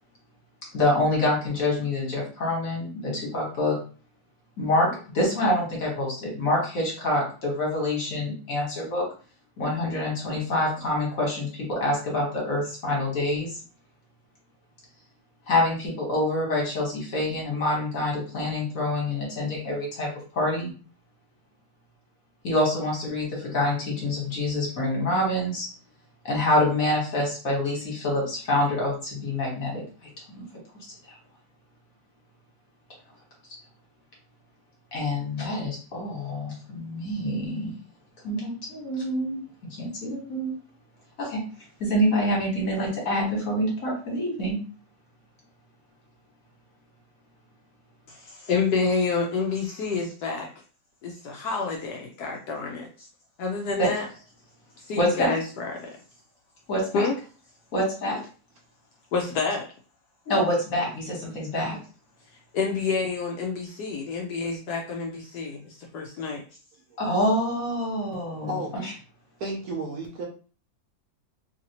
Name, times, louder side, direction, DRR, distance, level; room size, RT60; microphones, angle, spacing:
voice 1, 0.7-3.7 4.6-4.9 5.1-9.0 9.6-13.5 15.5-20.1 20.3-20.7 22.4-25.7 26.2-29.8 30.3-30.4 34.9-37.8 38.2-39.4 39.8-40.5 41.2-41.4 41.8-44.6 53.8-53.9 54.9-55.3 56.7-57.0 57.7-58.2 60.3-61.8 67.0-68.9, left 1 dB, 50° left, -2 dB, 1.5 m, -26 dB
voice 2, 48.1-50.5 51.0-53.1 53.4-54.1 54.8-55.9 56.9-57.1 59.1-59.7 62.5-66.4, left 4 dB, 70° left, 0 dB, 1.0 m, -28 dB
voice 3, 69.4-70.2, right 1 dB, 65° right, 0 dB, 1.0 m, -32 dB
3.2 x 2.6 x 2.8 m, 0.38 s
omnidirectional pair, 2.0 m